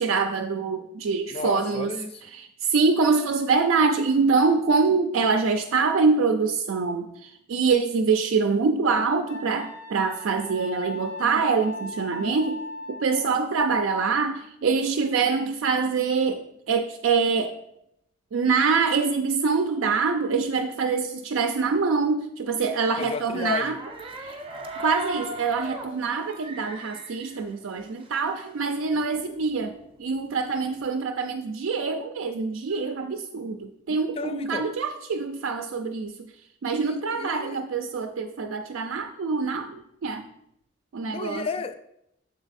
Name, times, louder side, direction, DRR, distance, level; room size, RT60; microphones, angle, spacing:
voice 1, 0.0-1.9 2.2-12.6 12.9-17.6 18.3-23.8 24.2-24.4 24.8-29.7 30.0-36.3 36.6-40.3 40.9-41.5, right 4 dB, 90° right, 6 dB, 0.4 m, -25 dB
voice 2, 1.3-2.2 23.0-23.8 33.9-34.7 36.9-37.6 41.1-41.7, left 4 dB, 30° left, 10 dB, 0.3 m, -32 dB
Wind instrument woodwind instrument, 9.3-13.4, left 1 dB, 80° left, 1.2 m, -38 dB
sound 1, 23.7-28.3 28.7-28.8 28.9-30.8, right 1 dB, 25° right, 0.6 m, -38 dB
6.9 x 3.9 x 4.1 m, 0.78 s
head